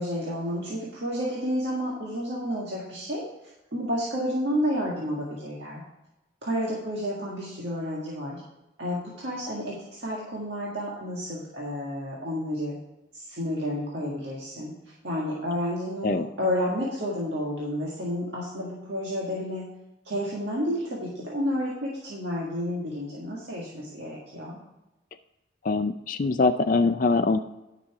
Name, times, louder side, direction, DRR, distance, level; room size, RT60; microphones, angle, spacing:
voice 1, 0.0-5.8 6.4-8.4 8.8-12.7 13.1-19.7 20.0-24.6, equal, 65° right, -5 dB, 1.8 m, -31 dB
voice 2, 25.6-27.4, left 3 dB, 45° left, 7 dB, 0.4 m, -23 dB
10.5 x 6.1 x 4.7 m, 0.98 s
head